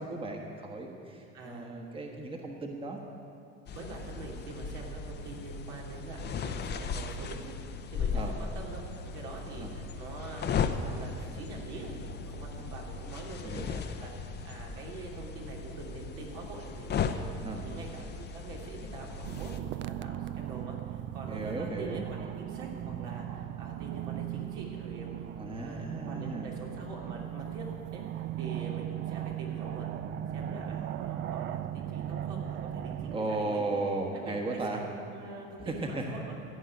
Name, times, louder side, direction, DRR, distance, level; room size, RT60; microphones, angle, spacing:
voice 1, 0.0-3.0 8.1-8.3 9.6-9.7 13.4-13.7 17.4-17.6 21.3-22.0 25.4-26.5 33.1-34.8 35.7-36.0, right 2 dB, 15° right, 2 dB, 1.3 m, -35 dB
voice 2, 1.3-1.7 3.7-25.1 25.4-27.6 27.9-28.0 28.4-29.9 30.3-33.6 34.0-36.3, right 3 dB, 80° right, -2 dB, 3.0 m, -44 dB
sound 1, 3.7-19.6, left 5 dB, 35° left, 0.7 m, -37 dB
sound 2, 19.2-33.2, right 11 dB, 40° right, 0.4 m, -37 dB
14.5 x 5.5 x 9.7 m, 2.5 s
supercardioid pair, 105°, 31 cm